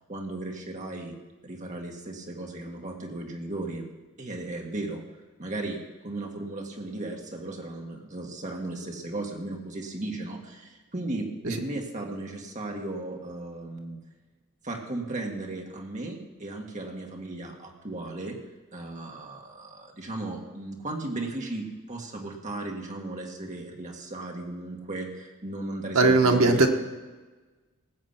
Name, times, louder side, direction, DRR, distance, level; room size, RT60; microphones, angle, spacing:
voice 1, 0.1-1.2 1.4-3.8 4.2-5.0 5.4-5.8 6.0-14.0 14.6-18.4 18.7-26.6, right 2 dB, 35° right, 0 dB, 2.0 m, -36 dB
voice 2, 25.9-26.7, right 3 dB, 75° right, 4 dB, 1.4 m, -18 dB
19.0 x 7.5 x 5.9 m, 1.3 s
head